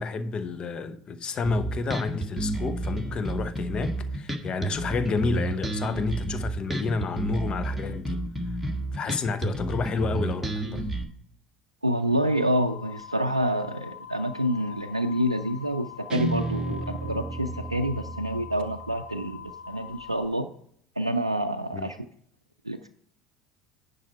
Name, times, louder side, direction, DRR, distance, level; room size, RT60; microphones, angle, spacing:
voice 1, 0.0-8.2 8.9-10.8 16.7-16.8 21.7-21.9, left 4 dB, 35° left, 0.8 m, -30 dB
Bass guitar, 1.4-11.0, right 1 dB, 5° right, 1.5 m, -30 dB
voice 2, 11.8-20.5 21.0-22.0 22.6-22.9, equal, 90° right, 0.4 m, -27 dB
sound 1, 12.2-20.2, left 8 dB, 70° left, 1.6 m, -44 dB
Guitar, 16.1-19.3, right 3 dB, 25° right, 0.5 m, -34 dB
10.5 x 5.4 x 4.5 m
figure-of-eight pair, 65°, 3 cm